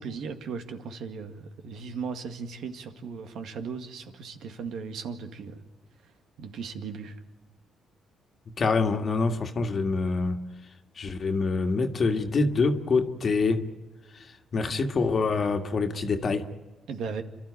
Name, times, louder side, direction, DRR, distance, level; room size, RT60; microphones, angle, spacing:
voice 1, 0.0-5.6 6.4-7.2 16.9-17.2, right 5 dB, 75° right, 2.0 m, -37 dB
voice 2, 8.6-10.4 11.0-13.7 14.1-16.5, left 4 dB, 45° left, 1.8 m, -26 dB
29.0 x 12.5 x 9.9 m
cardioid pair, 90°, 0 cm